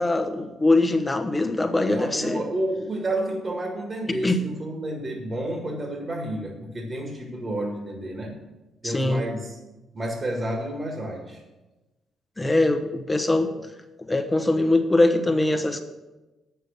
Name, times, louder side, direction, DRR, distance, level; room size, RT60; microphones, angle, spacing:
voice 1, 0.0-2.5 4.1-4.4 8.8-9.2 12.4-13.5 14.1-15.8, left 2 dB, 15° left, 6 dB, 1.1 m, -22 dB
voice 2, 1.9-8.3 8.8-9.6 9.9-11.4, right 1 dB, 40° right, 1 dB, 1.8 m, -30 dB
8.8 x 6.9 x 6.7 m, 1.1 s
cardioid pair, 90°, 0 cm